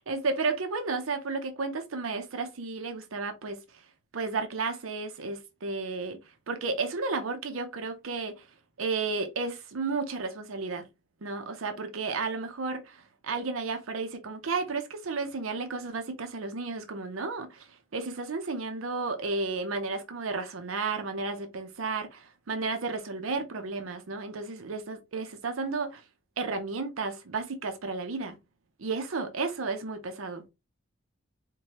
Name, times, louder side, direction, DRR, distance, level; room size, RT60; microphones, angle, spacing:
voice 1, 0.0-3.8 4.1-6.2 6.5-8.5 8.8-10.9 11.2-26.0 26.4-28.4 28.8-30.4, right 4 dB, 80° right, 0.6 m, -33 dB
4.6 x 2.2 x 2.8 m
head